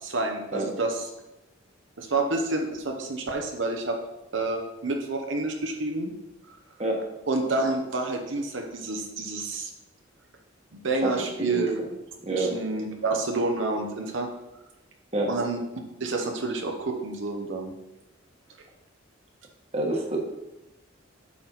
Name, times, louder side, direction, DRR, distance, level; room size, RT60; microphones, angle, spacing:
voice 1, 0.0-1.1 2.0-4.0 4.3-6.1 7.3-9.7 10.7-11.8 12.3-14.3 15.3-15.6 16.0-17.7, right 2 dB, 75° right, 2 dB, 1.0 m, -29 dB
voice 2, 19.7-20.2, right 2 dB, 30° right, 1 dB, 1.3 m, -26 dB
8.6 x 6.0 x 4.1 m, 0.98 s
head